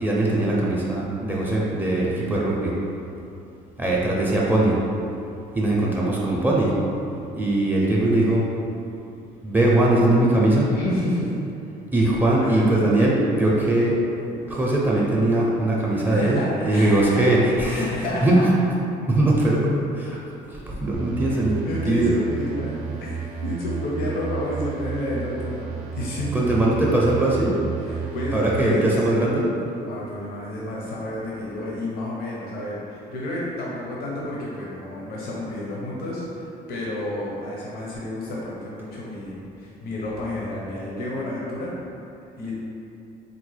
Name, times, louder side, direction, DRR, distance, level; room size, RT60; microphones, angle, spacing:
voice 1, 0.0-2.7 3.8-4.8 5.5-6.7 7.3-8.4 9.4-10.7 11.9-13.9 14.5-17.9 18.2-18.4 19.1-20.2 20.5-21.5 21.9-22.2 26.3-27.5 28.3-29.5, right 1 dB, 10° right, -5 dB, 0.5 m, -21 dB
voice 2, 10.7-11.3 12.4-12.7 16.0-17.3 17.7-18.4 21.6-22.8 23.1-26.8 27.8-28.9 29.8-41.7 42.4-42.5, left 1 dB, 65° left, -5 dB, 0.7 m, -30 dB
sound 1, 20.9-28.6, right 6 dB, 70° right, 0.5 m, -32 dB
3.7 x 2.1 x 3.2 m, 2.7 s
cardioid pair, 110°, 17 cm